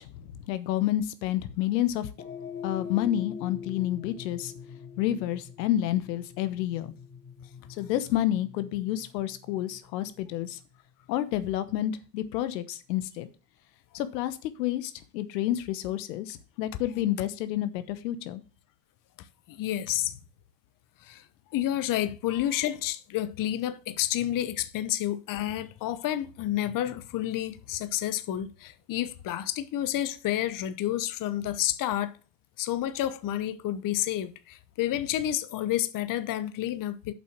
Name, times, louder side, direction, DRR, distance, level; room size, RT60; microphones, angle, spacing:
voice 1, 0.0-2.1 2.6-4.5 5.0-6.9 7.8-10.6 11.1-13.3 13.9-18.4, left 13 dB, 80° left, 1.2 m, -29 dB
sound 1, 2.1-10.6, left 6 dB, 20° left, 1.6 m, -43 dB
voice 2, 19.5-20.1 21.0-21.2 21.5-32.1 32.6-37.1, left 12 dB, 40° left, 1.0 m, -30 dB
7.6 x 5.7 x 5.9 m
hypercardioid pair, 95°, 49 cm